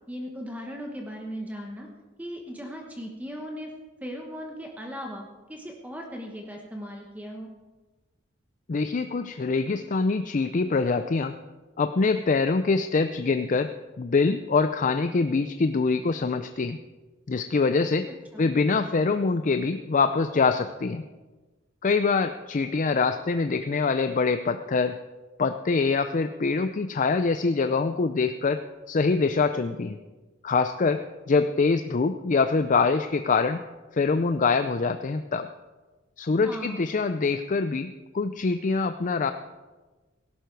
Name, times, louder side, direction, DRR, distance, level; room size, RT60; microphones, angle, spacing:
voice 1, 0.1-1.9 2.2-3.7 4.0-7.5 18.1-18.5 36.4-37.0, equal, 10° right, 1 dB, 1.2 m, -38 dB
voice 2, 8.7-11.3 11.8-16.8 17.3-18.1 18.4-21.0 21.8-25.0 25.4-30.0 30.4-33.6 33.9-35.5 36.2-39.3, left 4 dB, 40° left, 9 dB, 0.5 m, -24 dB
17.5 x 11.5 x 4.6 m, 1.3 s
head